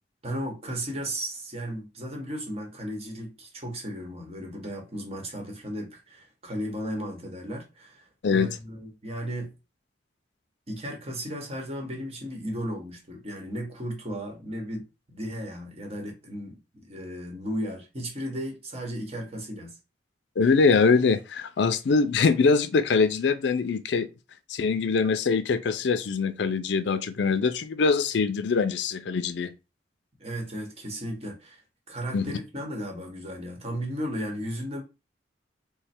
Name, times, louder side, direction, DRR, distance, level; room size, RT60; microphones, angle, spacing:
voice 1, 0.2-9.5 10.7-19.8 30.2-31.6 31.9-34.8, equal, 35° right, 1.1 m, -35 dB
voice 2, 20.4-24.1 24.5-29.5 32.1-32.3, left 4 dB, 70° left, 0.4 m, -23 dB
3.2 x 2.1 x 4.2 m
head